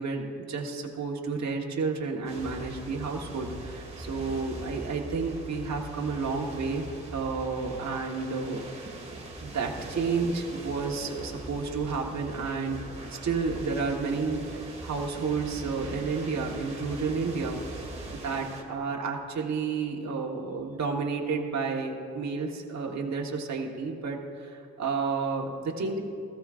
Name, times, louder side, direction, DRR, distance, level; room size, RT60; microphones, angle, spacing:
voice 1, 0.0-6.9 7.1-8.9 9.4-12.8 13.2-17.6 18.1-26.0, right 4 dB, 50° right, 0 dB, 1.4 m, -31 dB
sound 1, 2.3-18.6, right 2 dB, 20° right, 2.0 m, -41 dB
15.0 x 14.5 x 2.5 m, 2.5 s
cardioid pair, 75°, 35 cm